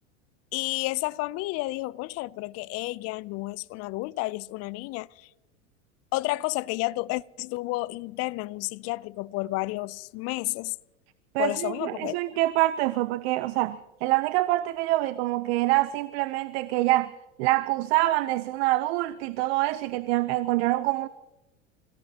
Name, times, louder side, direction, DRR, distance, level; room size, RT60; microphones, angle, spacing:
voice 1, 0.5-5.3 6.1-10.8 11.4-12.2, left 20 dB, 40° left, 0.5 m, -31 dB
voice 2, 11.3-17.1 17.4-21.1, right 17 dB, 55° right, 0.7 m, -25 dB
28.5 x 17.0 x 2.9 m
hypercardioid pair, 95°, 37 cm